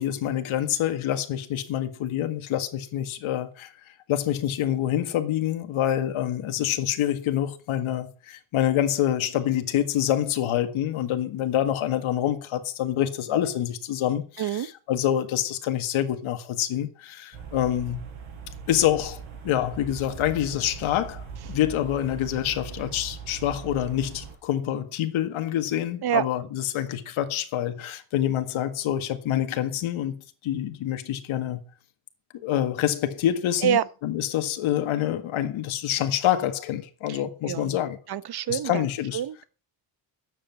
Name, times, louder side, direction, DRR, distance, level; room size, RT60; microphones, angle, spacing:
voice 1, 0.0-3.7 4.1-18.0 18.7-30.2 30.4-31.6 32.4-38.0 38.5-39.2, left 11 dB, 80° left, 1.8 m, -26 dB
sound 1, 17.3-24.4, right 7 dB, 70° right, 4.8 m, -40 dB
voice 2, 38.1-38.8 39.1-39.4, right 9 dB, 50° right, 0.9 m, -26 dB
10.0 x 7.7 x 7.2 m
cardioid pair, 95°, 48 cm